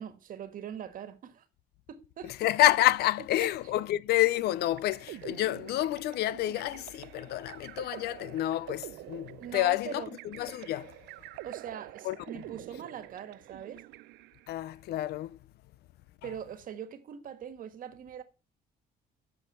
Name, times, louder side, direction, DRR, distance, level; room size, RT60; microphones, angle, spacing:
voice 1, 0.0-1.4 1.9-2.3 3.4-3.5 9.4-10.1 11.4-13.8 16.2-18.2, right 8 dB, 55° right, 1.5 m, -42 dB
voice 2, 2.2-11.1 12.0-12.2 14.5-15.5 16.2-16.3, left 15 dB, 70° left, 0.5 m, -29 dB
sound 1, 4.2-14.6, right 18 dB, 85° right, 0.5 m, -47 dB
8.5 x 7.0 x 5.6 m
cardioid pair, 110°, 17 cm